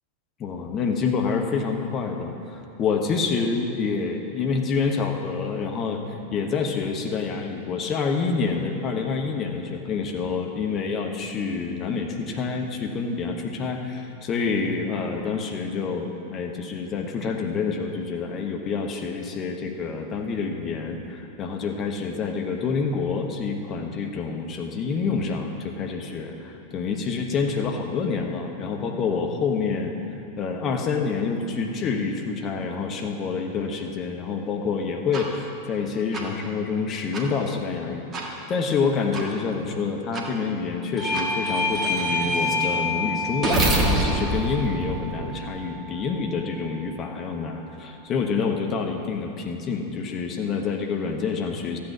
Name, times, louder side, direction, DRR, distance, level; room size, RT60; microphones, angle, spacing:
voice 1, 0.4-29.9 30.4-51.8, left 5 dB, 30° left, 3 dB, 1.1 m, -27 dB
sound 1, 35.1-35.2 36.1-36.2 37.1-37.2 38.1-38.3 39.1-39.2 40.1-40.2 41.1-41.3 41.8-45.7, right 2 dB, 25° right, 1.8 m, -27 dB
Bell / Doorbell, 41.0-46.1, left 2 dB, 5° right, 2.9 m, -28 dB
14.5 x 8.6 x 6.0 m, 2.9 s
figure-of-eight pair, 90°, 0 cm